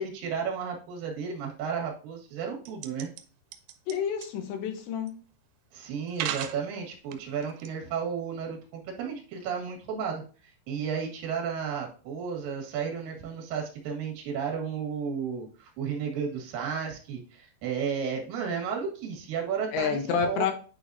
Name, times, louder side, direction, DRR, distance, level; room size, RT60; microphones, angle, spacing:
voice 1, 0.0-3.1 5.7-10.2 10.7-20.5, right 6 dB, 60° right, 1 dB, 3.0 m, -33 dB
sound 1, 2.7-3.2 3.5-3.9 4.2-4.3 5.1-5.2 6.1-6.6 7.1-7.7, right 11 dB, 90° right, 2.9 m, -34 dB
voice 2, 3.9-5.2 19.7-20.5, left 6 dB, 85° left, 5 dB, 3.3 m, -29 dB
9.2 x 4.1 x 2.6 m, 0.39 s
omnidirectional pair, 5.0 m